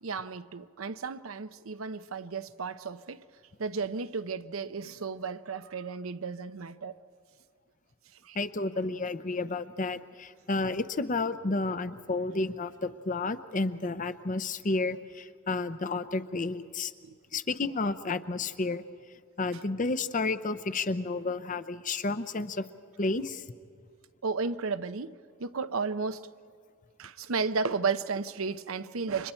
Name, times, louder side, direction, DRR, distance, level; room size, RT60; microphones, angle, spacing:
voice 1, 0.0-3.2 3.6-7.0 8.2-8.4 17.0-17.2 24.2-26.3 27.0-29.3, right 4 dB, 80° right, 0.7 m, -33 dB
voice 2, 8.3-16.9 17.3-18.8 19.4-22.6 23.0-23.4, left 3 dB, 40° left, 0.7 m, -31 dB
30.0 x 25.5 x 4.4 m
head